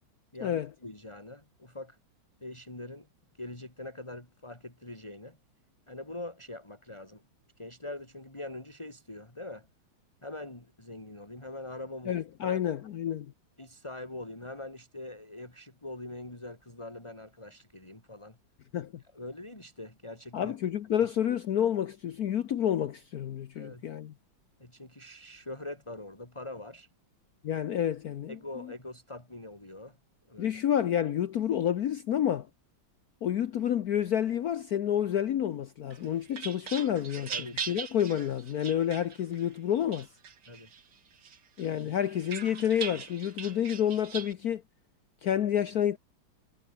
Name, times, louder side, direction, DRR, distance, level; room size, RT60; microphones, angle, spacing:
voice 1, 0.3-2.0 2.4-3.1 3.3-5.4 5.9-7.2 7.6-9.7 10.2-12.6 13.6-18.4 19.1-20.6 23.6-23.9 24.6-26.9 28.3-30.0 30.3-30.6 37.3-37.8 40.5-40.7, left 2 dB, 15° left, 3.6 m, -43 dB
voice 2, 12.1-13.3 18.7-19.0 20.3-24.1 27.4-28.7 30.4-32.5 33.2-40.1 41.6-44.6 45.2-46.0, left 10 dB, 60° left, 1.2 m, -29 dB
sound 1, 35.9-39.5 39.9-40.8 41.2-44.3, right 7 dB, 60° right, 2.4 m, -40 dB
omnidirectional pair, 2.1 m